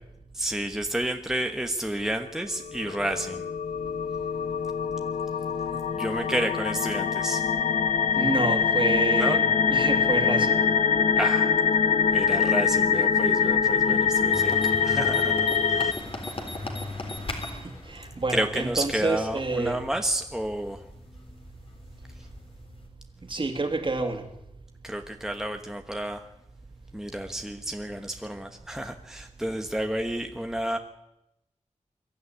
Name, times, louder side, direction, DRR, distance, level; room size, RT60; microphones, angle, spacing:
voice 1, 0.3-3.4 5.7-7.4 9.2-9.4 11.2-11.7 12.1-16.4 18.3-20.8 24.8-26.3 26.9-30.8, right 1 dB, 5° right, 4 dB, 1.2 m, -31 dB
sound 1, 2.7-15.9, left 6 dB, 90° left, 1.2 m, -24 dB
voice 2, 8.1-10.6 17.9-19.8 23.3-24.2, right 3 dB, 45° right, 5 dB, 2.8 m, -28 dB
sound 2, 14.3-22.9, left 2 dB, 45° left, 3.8 m, -39 dB
22.5 x 13.0 x 9.7 m, 0.89 s
wide cardioid pair, 110°, 12 cm